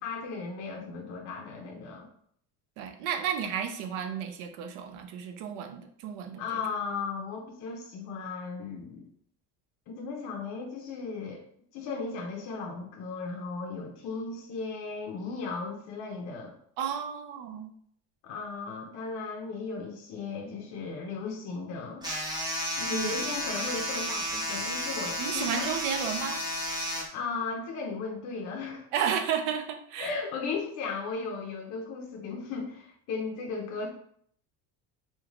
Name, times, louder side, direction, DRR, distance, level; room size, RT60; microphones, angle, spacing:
voice 1, 0.0-2.1 6.4-9.0 9.9-11.4 11.7-16.5 18.2-22.1 22.8-25.7 27.1-28.9 30.0-33.9, left 4 dB, 50° left, 0 dB, 0.5 m, -36 dB
voice 2, 2.8-6.6 16.8-17.7 22.9-23.3 25.2-26.4 28.9-30.1, right 8 dB, 80° right, 6 dB, 0.5 m, -32 dB
sound 1, 22.0-27.0, equal, 10° right, 0.6 m, -32 dB
3.1 x 2.2 x 2.4 m, 0.65 s
cardioid pair, 135°, 36 cm